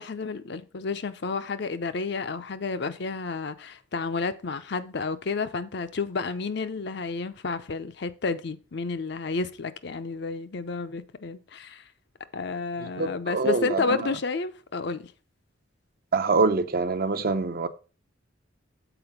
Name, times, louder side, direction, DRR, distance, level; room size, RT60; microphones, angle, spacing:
voice 1, 0.0-11.8 12.3-15.1, left 4 dB, 60° left, 0.6 m, -31 dB
voice 2, 13.0-14.0 16.1-17.7, right 3 dB, 50° right, 0.6 m, -25 dB
7.0 x 4.4 x 5.8 m
head